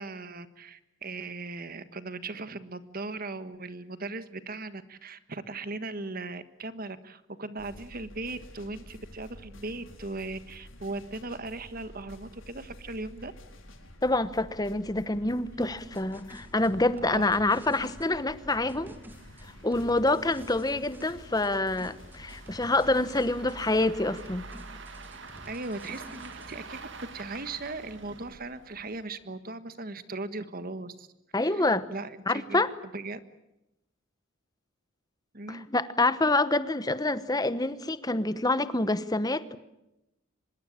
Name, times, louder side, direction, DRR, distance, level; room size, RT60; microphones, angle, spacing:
voice 1, 0.0-13.3 17.0-17.5 25.4-31.1 31.4-32.6 32.9-33.2 35.3-35.7, right 3 dB, 45° right, 12 dB, 1.5 m, -38 dB
sound 1, 7.6-23.9, left 1 dB, 70° left, 4.0 m, -50 dB
sound 2, 13.2-13.3 13.7-13.8 14.1-14.2 14.8-29.2, right 3 dB, 60° right, 2.5 m, -48 dB
voice 2, 14.0-18.9 19.6-24.5 31.3-31.8 32.3-32.7 35.5-39.6, left 2 dB, 20° left, 14 dB, 1.0 m, -27 dB
sound 3, 15.6-18.1 18.7-21.5 21.8-23.6 23.8-26.6, equal, 10° right, 2.5 m, -50 dB
25.0 x 21.5 x 8.8 m, 0.90 s
head